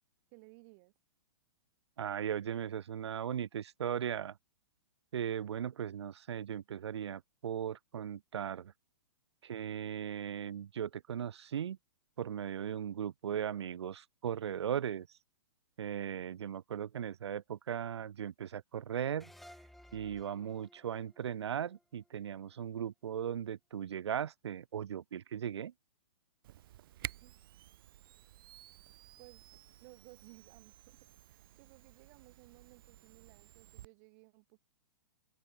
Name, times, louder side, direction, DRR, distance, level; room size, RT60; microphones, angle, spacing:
voice 1, 0.3-0.9 27.2-27.4 29.2-34.7, right 32 dB, 40° right, 2.5 m, -59 dB
voice 2, 2.0-4.4 5.1-8.7 9.4-11.8 12.2-15.1 15.8-19.3 19.9-25.7, right 9 dB, 90° right, 0.4 m, -38 dB
sound 1, 19.2-22.5, left 1 dB, ahead, 1.5 m, -58 dB
Camera, 26.4-33.9, right 14 dB, 55° right, 1.0 m, -51 dB
hypercardioid pair, 130°, 14 cm